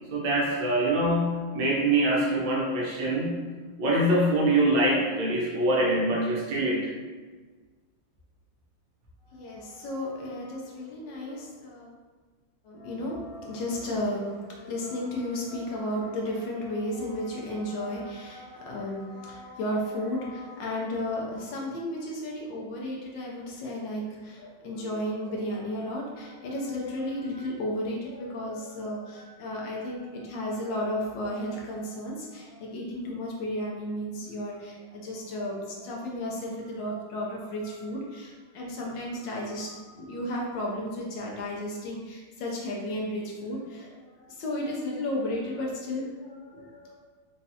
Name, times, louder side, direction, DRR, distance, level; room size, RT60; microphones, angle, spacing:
voice 1, 0.1-3.4 3.8-6.9, right 1 dB, 70° right, -3 dB, 1.4 m, -24 dB
voice 2, 9.3-11.9 12.6-47.0, left 1 dB, 75° left, -2 dB, 1.3 m, -33 dB
4.0 x 2.3 x 2.7 m, 1.4 s
omnidirectional pair, 2.2 m